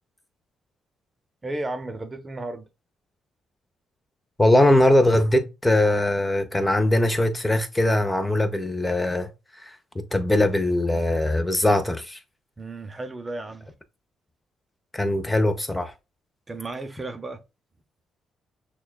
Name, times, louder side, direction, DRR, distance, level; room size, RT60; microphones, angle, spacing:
voice 1, 1.4-2.7 12.6-13.7 16.5-17.4, right 2 dB, 25° right, 0.6 m, -34 dB
voice 2, 4.4-9.3 9.6-9.7 10.1-12.2 14.9-15.9, left 1 dB, 15° left, 0.6 m, -21 dB
6.2 x 2.3 x 2.2 m
cardioid pair, 90°, 0 cm